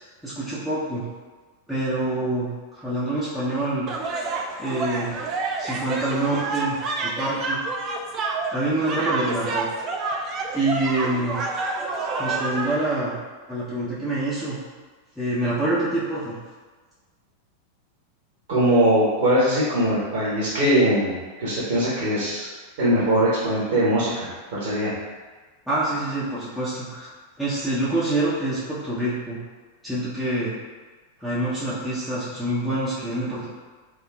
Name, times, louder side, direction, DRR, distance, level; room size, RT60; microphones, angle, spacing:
voice 1, 0.2-1.0 1.7-2.5 2.7-3.9 4.6-5.2 5.6-6.8 7.0-7.6 8.5-9.7 10.5-11.4 12.2-13.2 13.5-14.6 15.2-16.4 25.7-27.1 27.4-29.4 29.8-30.5 31.2-33.5, right 1 dB, 5° left, -12 dB, 0.6 m, -26 dB
sound 1, 3.9-12.7, right 3 dB, 30° right, 0.3 m, -28 dB
voice 2, 18.5-22.5 22.8-24.9, right 1 dB, 55° right, -8 dB, 0.8 m, -21 dB
3.4 x 2.4 x 2.3 m, 1.4 s
figure-of-eight pair, 90°, 0 cm